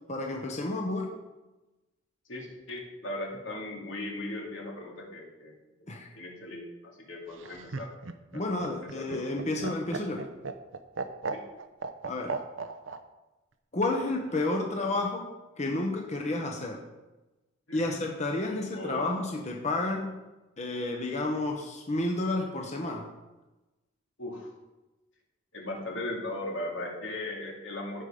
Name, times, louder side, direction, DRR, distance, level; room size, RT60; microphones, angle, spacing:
voice 1, 0.1-1.1 5.9-6.1 8.3-10.3 12.0-12.4 13.7-15.3 15.6-16.8 17.7-20.2 20.6-23.1, left 2 dB, 35° left, 1 dB, 1.1 m, -31 dB
voice 2, 2.3-5.5 5.9-7.9 8.3-8.5 8.8-9.3 11.3-11.4 17.7-18.0 18.7-19.2 24.2-24.5 25.5-28.0, left 1 dB, 80° left, 0 dB, 2.4 m, -38 dB
Laughter, 7.3-13.0 14.3-14.9, right 4 dB, 80° right, 0.8 m, -37 dB
16.0 x 5.4 x 5.0 m, 1.1 s
head